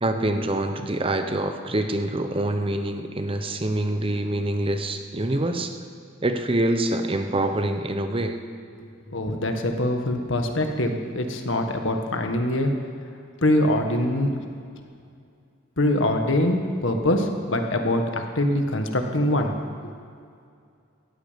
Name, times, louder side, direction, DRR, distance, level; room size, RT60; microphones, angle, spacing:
voice 1, 0.0-5.8 6.2-8.4, right 1 dB, 30° right, 7 dB, 0.9 m, -25 dB
voice 2, 8.8-12.7 13.4-14.4 15.8-20.0, left 1 dB, 75° left, 4 dB, 1.7 m, -24 dB
18.0 x 14.5 x 5.3 m, 2.3 s
head